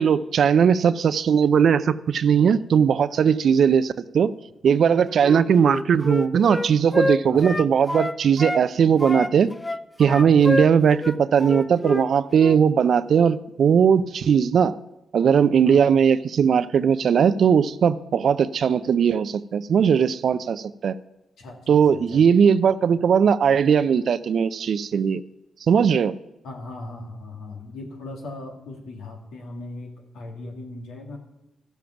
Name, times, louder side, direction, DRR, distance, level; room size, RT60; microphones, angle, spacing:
voice 1, 0.0-4.3 4.6-9.5 10.0-14.7 15.1-20.9 21.7-25.2 25.7-26.2, right 7 dB, 65° right, 15 dB, 0.5 m, -19 dB
Wind instrument woodwind instrument, 5.2-8.6 9.0-12.1 12.4-12.6, left 1 dB, 15° left, 0.5 m, -27 dB
voice 2, 10.1-10.5 15.6-15.8 21.4-22.2 26.4-31.2, left 2 dB, 80° left, 1 dB, 2.1 m, -38 dB
13.0 x 7.3 x 5.8 m, 0.93 s
supercardioid pair, 50°, 0 cm